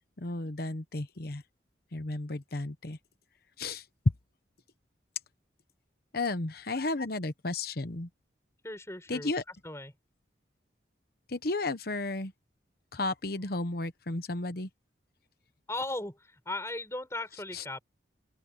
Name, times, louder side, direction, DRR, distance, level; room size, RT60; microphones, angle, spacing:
voice 1, 0.2-1.4 1.9-3.0 3.6-3.8 6.1-8.1 9.1-9.4 11.3-12.3 12.9-14.7 17.5-17.6, left 2 dB, 55° left, 1.1 m, -33 dB
voice 2, 8.6-9.9 15.7-17.8, left 2 dB, 15° left, 6.4 m, -37 dB
open air
head